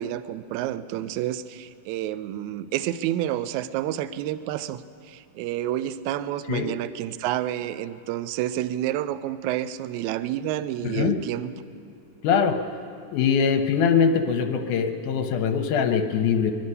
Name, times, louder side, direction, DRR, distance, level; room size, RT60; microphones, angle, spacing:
voice 1, 0.0-11.5, right 12 dB, 85° right, 12 dB, 1.7 m, -29 dB
voice 2, 10.8-11.2 12.2-12.6 13.1-16.5, left 6 dB, 75° left, 5 dB, 2.2 m, -22 dB
23.5 x 11.5 x 5.4 m, 2.5 s
omnidirectional pair, 3.9 m